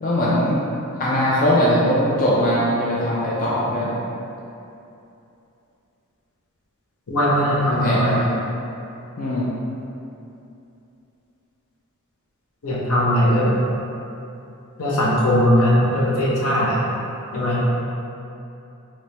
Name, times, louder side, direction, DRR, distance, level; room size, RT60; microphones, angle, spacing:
voice 1, 0.0-0.6 1.0-3.9 7.6-8.3 9.2-9.5, equal, 40° left, -7 dB, 0.4 m, -20 dB
voice 2, 7.1-8.2 12.6-13.6 14.8-16.8 17.3-17.6, equal, 80° left, -6 dB, 0.8 m, -19 dB
3.2 x 3.0 x 2.9 m, 2.8 s
head